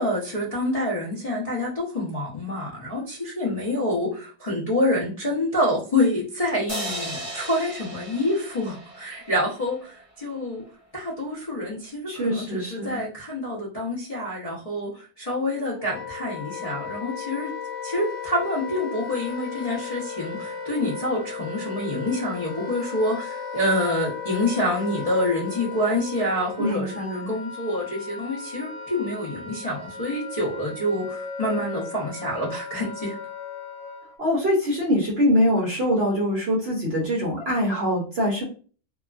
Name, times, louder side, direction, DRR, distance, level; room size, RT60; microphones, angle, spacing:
voice 1, 0.0-10.6 10.9-17.5 17.8-33.1, left 1 dB, 60° left, -6 dB, 0.3 m, -27 dB
sound 1, 6.7-10.0, right 1 dB, 15° right, 0.6 m, -36 dB
voice 2, 12.1-13.0 26.6-27.3 34.2-38.4, equal, 60° right, -4 dB, 0.7 m, -23 dB
Wind instrument woodwind instrument, 15.3-34.2, left 5 dB, 80° left, 1.3 m, -36 dB
2.8 x 2.3 x 2.4 m, 0.39 s
omnidirectional pair, 1.8 m